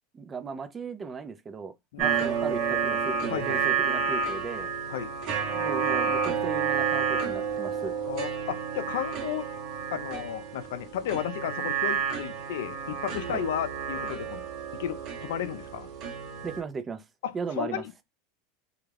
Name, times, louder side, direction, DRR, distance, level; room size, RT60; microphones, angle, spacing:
voice 1, 0.1-4.7 5.5-7.9 13.3-13.4 16.4-17.0 17.3-17.8, right 5 dB, 20° right, 0.4 m, -36 dB
sound 1, 2.0-16.6, right 6 dB, 45° right, 0.8 m, -30 dB
voice 2, 3.3-3.6 4.9-5.1 8.1-9.5 9.9-14.4 14.7-15.9 17.2-18.0, left 10 dB, 80° left, 0.3 m, -33 dB
2.3 x 2.1 x 3.2 m
supercardioid pair, 135°, 0 cm